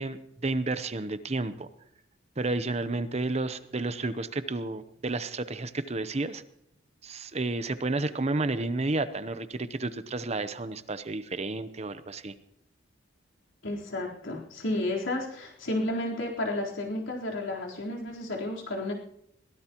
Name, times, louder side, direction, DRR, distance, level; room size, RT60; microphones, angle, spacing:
voice 1, 0.0-1.7 2.4-6.4 7.0-12.3, right 2 dB, 35° right, 12 dB, 0.8 m, -31 dB
voice 2, 13.6-18.9, left 1 dB, 85° left, -2 dB, 3.9 m, -32 dB
22.0 x 17.0 x 3.0 m, 0.75 s
head